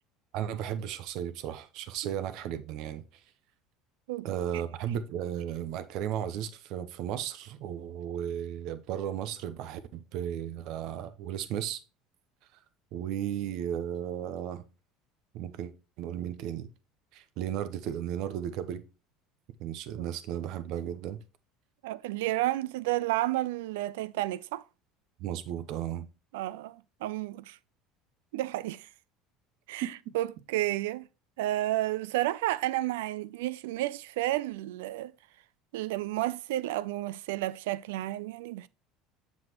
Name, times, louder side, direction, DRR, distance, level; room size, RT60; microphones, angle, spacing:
voice 1, 0.3-3.0 4.2-11.8 12.9-14.6 15.3-15.7 16.0-16.7 17.1-18.8 19.6-21.2 25.2-26.1 29.8-30.1, right 10 dB, 65° right, 0.8 m, -35 dB
voice 2, 21.8-24.6 26.3-27.6 28.3-28.9 29.7-29.9 30.1-31.1 31.4-35.1 35.7-38.7, right 16 dB, 90° right, 0.4 m, -31 dB
7.3 x 6.3 x 3.0 m
supercardioid pair, 115°, 0 cm